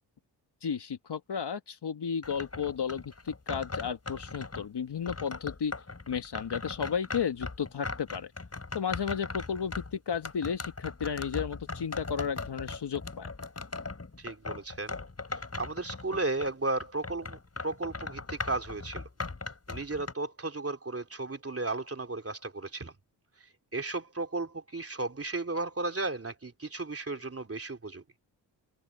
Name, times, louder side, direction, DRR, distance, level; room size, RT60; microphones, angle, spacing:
voice 1, 0.6-5.7 6.1-8.3 8.7-13.3, left 7 dB, 55° left, 1.8 m, -33 dB
sound 1, 2.2-4.7 5.1-16.5 16.8-20.1, left 3 dB, 30° left, 4.4 m, -39 dB
voice 2, 14.2-15.0 15.3-19.1 19.7-22.9 23.7-28.0, right 3 dB, 25° right, 3.2 m, -34 dB
supercardioid pair, 50°, 49 cm